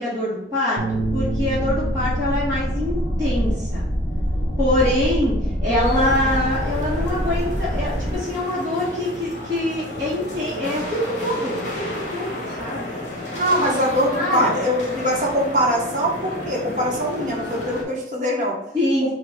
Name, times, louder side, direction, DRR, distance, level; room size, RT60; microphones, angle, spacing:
voice 1, 0.0-3.9 4.6-5.3 5.6-13.1 13.5-13.8 14.1-14.5 18.7-19.1, left 1 dB, 20° right, -11 dB, 1.2 m, -24 dB
Bass guitar, 0.8-5.2 5.6-7.0, right 3 dB, 70° right, 0.5 m, -33 dB
sound 1, 0.9-8.1, equal, 5° left, 1.0 m, -25 dB
sound 2, 5.8-17.8, left 1 dB, 40° left, 1.1 m, -32 dB
voice 2, 13.3-18.5, equal, 45° right, -2 dB, 1.1 m, -22 dB
5.5 x 2.3 x 3.6 m, 0.84 s
head